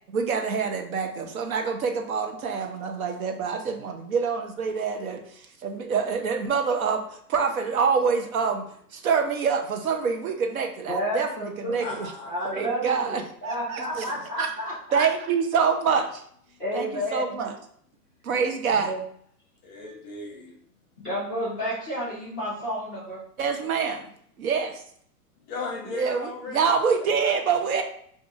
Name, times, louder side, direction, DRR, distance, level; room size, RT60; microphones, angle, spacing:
voice 1, 0.1-5.2 5.6-8.6 8.9-11.3 11.6-12.1 12.5-14.1 14.4-14.5 14.9-16.2 16.7-16.9 17.1-17.5 18.2-18.9 23.4-24.1 24.4-24.8 25.9-27.8, right 5 dB, 60° right, 5 dB, 0.7 m, -26 dB
voice 2, 10.9-11.9 12.3-15.0 16.6-17.3 18.4-19.0 21.0-23.2, equal, 5° right, -15 dB, 0.3 m, -31 dB
voice 3, 11.8-12.7 19.6-20.5 25.5-26.7 27.2-27.8, left 3 dB, 25° left, 1 dB, 0.7 m, -37 dB
4.7 x 2.5 x 2.6 m, 0.62 s
hypercardioid pair, 125°, 48 cm